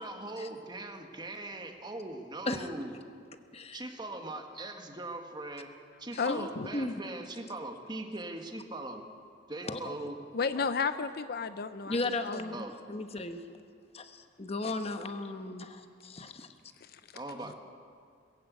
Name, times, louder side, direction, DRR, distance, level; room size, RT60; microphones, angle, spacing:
voice 1, 0.0-2.9 3.7-5.7 6.0-9.0 9.5-10.2 12.5-12.7 17.1-17.5, right 2 dB, 25° right, 5 dB, 1.7 m, -40 dB
voice 2, 3.5-3.9 6.1-7.0 9.6-9.9 10.6-10.7 11.9-13.4 13.9-16.5, left 2 dB, 35° left, 8 dB, 1.2 m, -36 dB
voice 3, 6.2-6.7 10.3-12.0 12.2-12.4 16.9-17.0, left 5 dB, 55° left, 11 dB, 0.6 m, -32 dB
21.0 x 15.5 x 8.3 m, 2.3 s
head